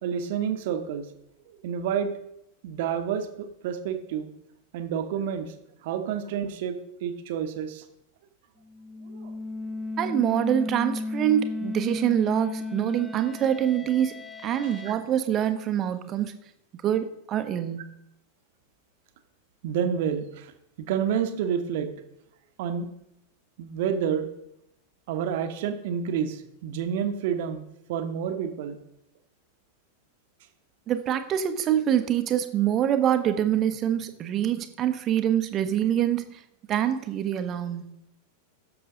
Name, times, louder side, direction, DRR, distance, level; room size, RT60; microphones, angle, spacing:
voice 1, 0.0-1.1 1.5-2.1 2.6-4.3 4.7-5.5 5.8-7.8 9.1-9.3 14.8-15.0 19.6-20.5 20.9-21.9 22.6-22.9 23.6-24.3 25.1-27.6 27.9-28.8, right 8 dB, 50° right, 7 dB, 1.2 m, -29 dB
sound 1, 8.7-14.9, left 2 dB, 10° left, 0.9 m, -34 dB
voice 2, 10.0-16.3 16.8-17.9 30.9-36.4 36.7-37.9, right 10 dB, 30° right, 10 dB, 1.0 m, -25 dB
15.5 x 6.9 x 3.8 m, 0.83 s
figure-of-eight pair, 90°, 0 cm